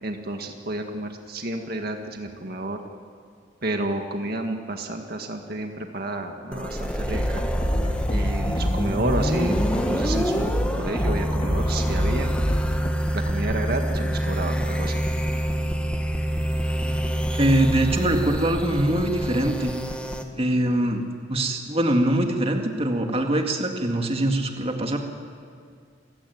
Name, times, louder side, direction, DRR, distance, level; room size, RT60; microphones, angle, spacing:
voice 1, 0.0-2.8 3.6-7.4 8.1-12.3 13.1-15.0, right 1 dB, 55° right, 4 dB, 1.8 m, -31 dB
sound 1, 6.5-20.2, equal, 5° left, 1.7 m, -26 dB
sound 2, 7.0-12.9, equal, 35° left, 2.4 m, -27 dB
voice 2, 17.4-19.7 20.4-21.0 21.3-25.0, right 1 dB, 30° right, 3 dB, 2.1 m, -23 dB
28.5 x 16.5 x 9.5 m, 2.2 s
head